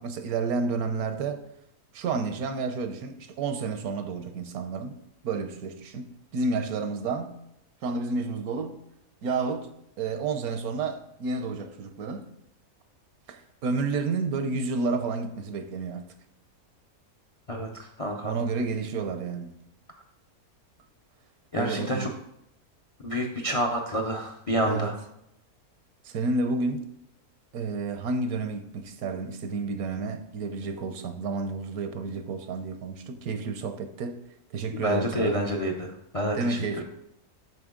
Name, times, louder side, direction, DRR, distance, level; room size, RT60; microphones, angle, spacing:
voice 1, 0.0-1.4 1.9-5.0 5.2-7.4 7.8-8.8 9.2-12.3 13.3-16.0 18.2-19.6 21.5-22.1 24.6-25.0 26.0-26.9 27.5-34.2 34.5-35.4 36.3-36.8, right 4 dB, 80° right, 1.2 m, -30 dB
voice 2, 17.5-18.3 21.5-22.1 23.0-24.9 34.8-36.8, equal, 45° left, 0.4 m, -28 dB
8.0 x 5.5 x 3.7 m
omnidirectional pair, 1.6 m